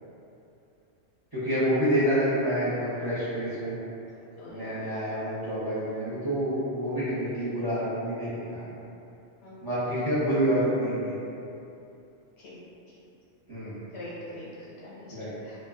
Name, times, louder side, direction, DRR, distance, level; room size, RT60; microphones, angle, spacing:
voice 1, 1.3-3.8 4.5-8.6 9.6-11.2 13.5-13.8 15.1-15.3, equal, 25° right, -14 dB, 0.6 m, -28 dB
voice 2, 4.4-4.8 9.4-9.5 12.4-12.5 12.9-13.0 13.9-15.1 15.4-15.6, left 1 dB, 70° left, -8 dB, 0.8 m, -43 dB
2.5 x 2.2 x 2.3 m, 2.8 s
omnidirectional pair, 1.2 m